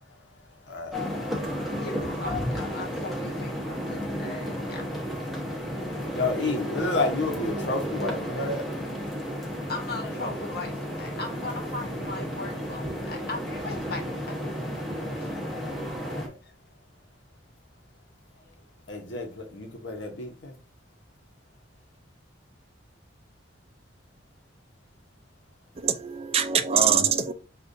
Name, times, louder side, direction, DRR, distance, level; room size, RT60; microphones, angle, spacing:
voice 1, 0.6-1.7 5.3-9.7 11.1-11.2 16.0-16.4 18.9-20.6, left 3 dB, 80° left, 0.9 m, -32 dB
sound 1, 0.9-16.3, equal, ahead, 1.0 m, -32 dB
voice 2, 1.8-4.9 9.7-14.8 15.2-15.3 16.4-16.5 18.3-18.6, left 2 dB, 60° left, 1.2 m, -38 dB
voice 3, 25.8-27.3, right 7 dB, 35° right, 0.4 m, -23 dB
6.5 x 2.4 x 2.6 m
head